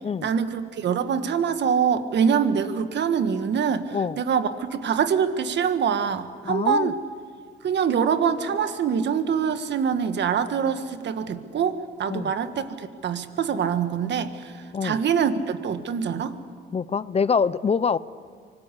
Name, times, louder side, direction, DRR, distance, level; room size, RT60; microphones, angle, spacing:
voice 1, 0.2-7.0 7.6-16.4, right 7 dB, 65° right, 10 dB, 1.6 m, -24 dB
voice 2, 6.4-6.9 12.1-12.3 14.7-15.0 16.7-18.0, left 6 dB, 30° left, 18 dB, 0.6 m, -24 dB
25.0 x 19.5 x 8.4 m, 2.1 s
cardioid pair, 90°, 20 cm